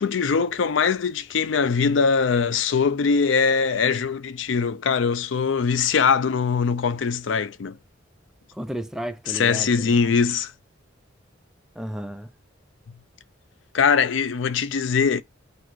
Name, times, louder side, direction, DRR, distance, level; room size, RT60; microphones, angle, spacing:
voice 1, 0.0-7.8 9.3-10.5 13.7-15.2, left 5 dB, 75° left, 0.4 m, -22 dB
voice 2, 8.5-10.0 11.8-12.3, equal, 5° right, 0.3 m, -33 dB
4.1 x 2.4 x 4.5 m
head